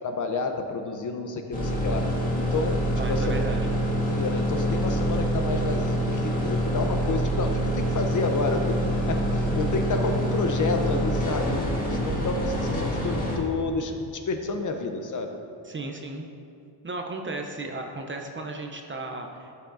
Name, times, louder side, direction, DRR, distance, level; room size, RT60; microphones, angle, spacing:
voice 1, 0.0-2.0 2.3-2.8 3.1-3.4 4.1-8.8 9.1-15.3, left 3 dB, 40° left, 5 dB, 0.7 m, -30 dB
sound 1, 1.5-13.4, equal, 15° left, 1.9 m, -26 dB
voice 2, 3.0-3.6 11.9-12.3 15.6-16.3 16.8-19.5, right 2 dB, 25° right, 3 dB, 0.6 m, -35 dB
12.5 x 5.8 x 2.6 m, 2.5 s
cardioid pair, 95°, 49 cm